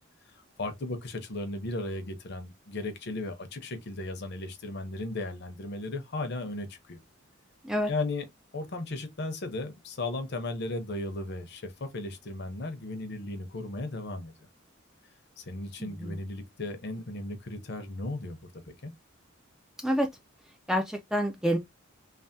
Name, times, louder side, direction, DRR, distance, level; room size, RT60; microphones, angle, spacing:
voice 1, 0.3-7.0 7.9-8.3 8.5-14.3 15.4-18.4 18.7-18.9, left 2 dB, 55° left, 0.7 m, -36 dB
voice 2, 15.8-16.2 19.8-20.1 20.7-21.6, equal, 5° right, 0.3 m, -28 dB
3.3 x 2.1 x 2.5 m
head